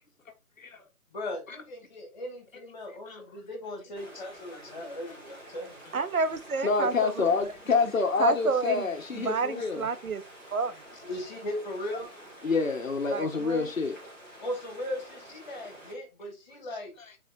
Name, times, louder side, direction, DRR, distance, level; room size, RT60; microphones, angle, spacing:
voice 1, 1.1-5.8 11.0-12.1 14.4-16.9, left 1 dB, 30° left, 2.8 m, -38 dB
voice 2, 2.9-3.3 4.0-4.7 5.0-5.2 5.8-5.9 6.6-9.9 10.7-11.0 11.9-14.0 16.6-17.2, left 4 dB, 65° left, 1.6 m, -29 dB
sound 1, 3.9-15.9, right 1 dB, ahead, 2.2 m, -49 dB
voice 3, 5.9-7.1 8.2-8.8 9.2-10.2 10.5-10.8 13.1-13.7, right 4 dB, 75° right, 1.1 m, -29 dB
8.2 x 4.8 x 2.8 m
hypercardioid pair, 170°, 44 cm